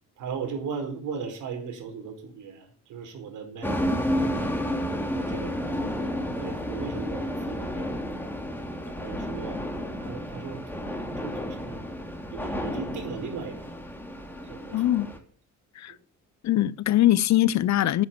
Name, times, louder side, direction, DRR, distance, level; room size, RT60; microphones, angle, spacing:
voice 1, 0.2-4.5 5.1-5.6 5.9-8.1 8.8-9.6 10.0-10.6 11.0-11.8 12.3-13.8 14.4-15.1 15.9-16.0, right 6 dB, 80° right, 4.7 m, -38 dB
sound 1, 3.6-15.2, equal, 5° left, 3.5 m, -31 dB
voice 2, 14.7-15.1 15.8-15.9 16.4-18.1, left 13 dB, 65° left, 0.7 m, -22 dB
10.5 x 9.7 x 7.4 m
cardioid pair, 90°, 30 cm